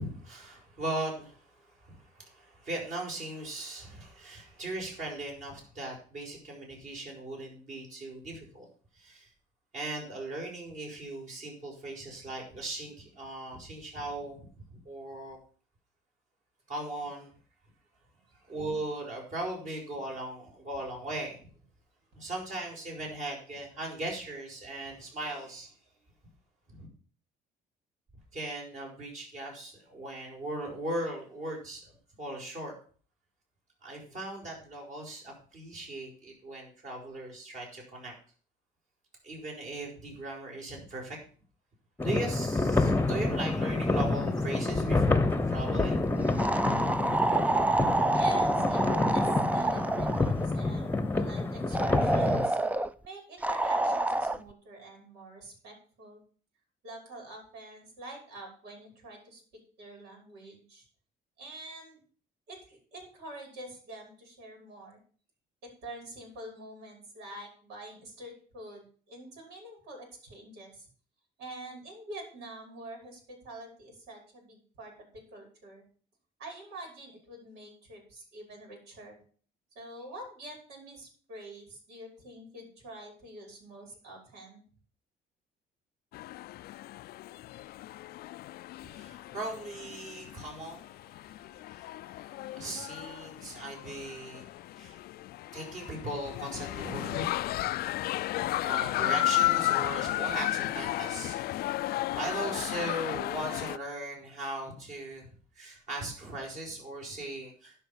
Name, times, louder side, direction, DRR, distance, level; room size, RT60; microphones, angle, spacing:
voice 1, 0.0-8.7 9.0-9.3 9.7-15.4 16.7-17.3 18.4-21.5 22.1-25.7 26.7-26.9 28.3-31.8 32.2-32.7 33.8-38.1 39.2-41.2 42.0-46.2 88.9-94.5 94.8-95.0 95.5-97.8 98.6-101.4 101.8-105.3 105.6-107.7, right 1 dB, 45° right, -1 dB, 6.2 m, -38 dB
sound 1, 42.0-52.5, left 2 dB, 10° left, 1.0 m, -28 dB
sound 2, 46.4-50.4 51.7-52.9 53.4-54.4, right 2 dB, 10° right, 0.5 m, -28 dB
voice 2, 47.7-52.6 53.0-56.2 56.8-59.4 59.8-60.9 61.4-62.0 62.5-65.0 65.6-70.9 71.4-75.8 76.4-79.2 79.8-84.6, right 1 dB, 80° right, 2 dB, 5.7 m, -46 dB
sound 3, 86.1-103.8, left 16 dB, 65° left, 0.4 m, -33 dB
11.0 x 5.7 x 7.3 m, 0.43 s
cardioid pair, 110°, 17 cm